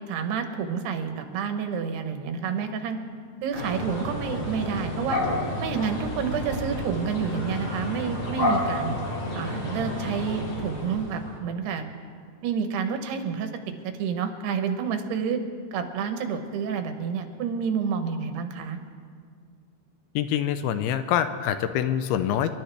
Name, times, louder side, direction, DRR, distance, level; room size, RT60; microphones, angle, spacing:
voice 1, 0.1-3.0 3.4-5.2 5.6-9.0 9.3-11.8 12.4-13.5 13.8-15.4 15.7-18.8, right 6 dB, 85° right, 7 dB, 3.1 m, -29 dB
sound 1, 3.5-11.4, left 1 dB, 40° left, 2.2 m, -30 dB
voice 2, 20.2-22.5, left 10 dB, 85° left, 10 dB, 2.4 m, -25 dB
28.5 x 11.5 x 3.4 m, 2.1 s
omnidirectional pair, 4.6 m